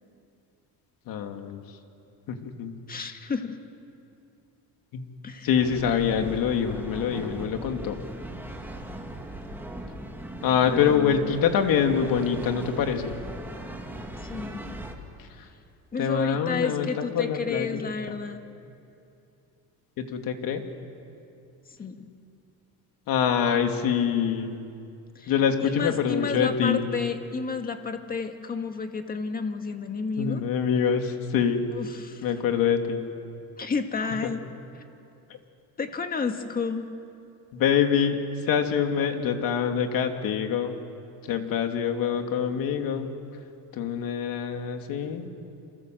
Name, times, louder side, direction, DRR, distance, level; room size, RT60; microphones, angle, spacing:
voice 1, 1.1-1.6 2.3-2.7 4.9-5.1 5.4-8.0 10.4-13.2 16.0-16.9 17.1-17.8 20.0-20.6 23.1-24.6 25.3-26.8 30.2-31.7 32.2-33.1 35.3-35.4 37.5-40.8 41.2-43.1 43.7-45.3, left 7 dB, 65° left, 5 dB, 2.7 m, -25 dB
voice 2, 2.9-3.6 5.2-5.5 10.7-11.3 14.1-14.9 15.9-18.4 21.7-22.1 25.2-25.3 25.6-30.4 31.7-32.3 33.6-34.4 34.7-34.8 35.8-36.9, left 5 dB, 25° left, 6 dB, 1.8 m, -31 dB
sound 1, 5.6-15.0, right 1 dB, 5° right, 2.3 m, -39 dB
27.5 x 27.0 x 7.8 m, 2.6 s
cardioid pair, 150°, 37 cm